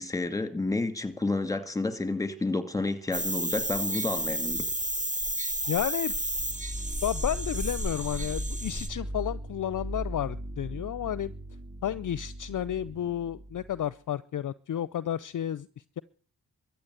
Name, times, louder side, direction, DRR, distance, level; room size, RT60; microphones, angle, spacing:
voice 1, 0.0-4.7, left 3 dB, 10° left, 2.3 m, -30 dB
sound 1, 3.1-8.9, right 1 dB, 20° right, 1.9 m, -32 dB
voice 2, 5.7-6.1 7.0-11.3 11.8-15.7, left 10 dB, 50° left, 0.6 m, -31 dB
sound 2, 6.2-13.9, right 1 dB, 35° right, 2.3 m, -39 dB
14.0 x 8.3 x 8.1 m
cardioid pair, 55°, 41 cm